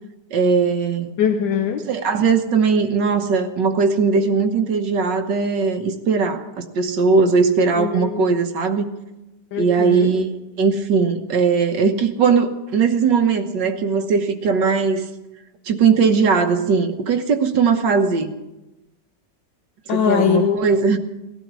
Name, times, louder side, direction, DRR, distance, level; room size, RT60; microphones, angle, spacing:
voice 1, 0.3-1.2 1.9-8.9 9.6-15.1 15.7-18.3 19.9-21.0, right 5 dB, 75° right, 6 dB, 1.8 m, -19 dB
voice 2, 1.2-1.8 7.8-8.2 9.5-10.1 19.9-20.6, left 8 dB, 90° left, 4 dB, 1.6 m, -21 dB
19.0 x 12.0 x 6.1 m, 1.0 s
omnidirectional pair, 1.9 m